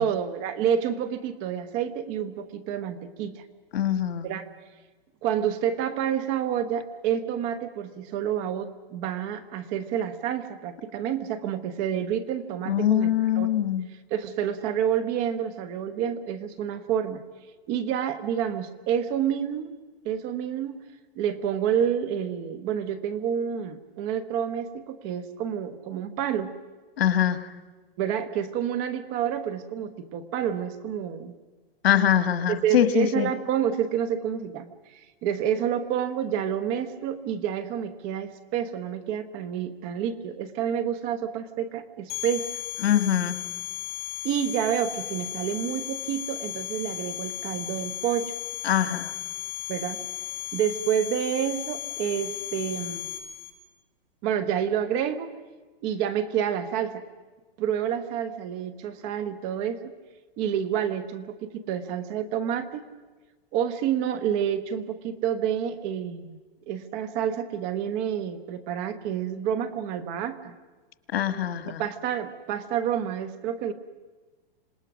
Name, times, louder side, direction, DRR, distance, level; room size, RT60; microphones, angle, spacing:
voice 1, 0.0-3.4 4.2-4.5 5.2-13.5 14.1-17.2 17.7-19.7 20.0-20.8 21.2-26.5 28.0-31.3 32.5-34.7 35.2-42.4 44.2-48.3 49.7-50.0 50.5-53.1 54.2-55.3 55.8-57.0 57.6-59.8 60.4-62.8 63.5-66.4 66.7-70.5 71.6-73.7, right 9 dB, 30° right, 12 dB, 1.2 m, -28 dB
voice 2, 3.7-4.3 12.6-13.9 27.0-27.5 31.8-33.3 42.8-43.4 48.6-49.1 71.1-71.8, left 10 dB, 90° left, 11 dB, 1.5 m, -23 dB
sound 1, 42.1-53.5, left 12 dB, 30° left, 7.8 m, -35 dB
26.5 x 19.0 x 6.2 m, 1.3 s
hypercardioid pair, 160°, 29 cm